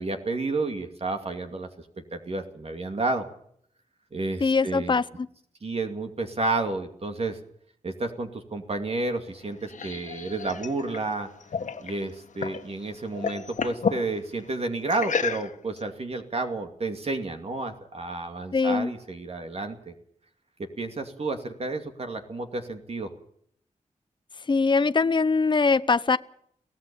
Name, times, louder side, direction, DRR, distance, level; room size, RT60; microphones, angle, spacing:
voice 1, 0.0-1.7 2.1-3.2 4.1-4.9 5.6-7.4 7.8-11.3 11.8-19.9 20.8-23.1, right 3 dB, 55° right, 5 dB, 2.5 m, -31 dB
voice 2, 4.4-5.3 18.5-18.9 24.5-26.2, left 4 dB, 40° left, 13 dB, 0.8 m, -22 dB
sound 1, 9.3-12.7 13.0-14.0 14.9-15.8, left 5 dB, 80° left, 1.7 m, -31 dB
23.5 x 17.0 x 7.0 m, 0.66 s
wide cardioid pair, 75°, 13 cm